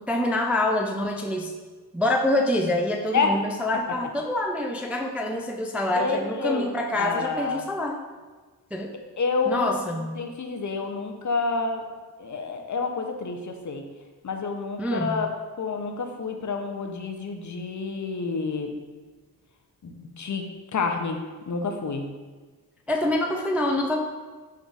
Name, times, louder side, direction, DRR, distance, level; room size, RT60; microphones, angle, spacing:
voice 1, 0.0-1.5 1.9-8.0 8.7-8.9 9.5-10.2 14.8-15.3 22.9-24.0, left 1 dB, 5° right, 1 dB, 0.3 m, -26 dB
voice 2, 3.1-3.4 6.0-6.7 7.0-7.6 9.2-9.7 10.2-11.8 12.2-13.8 14.2-15.3 15.6-18.7 19.8-20.4 20.7-22.1, left 4 dB, 50° left, 4 dB, 0.6 m, -28 dB
5.3 x 3.6 x 2.4 m, 1.4 s
cardioid pair, 70°, 39 cm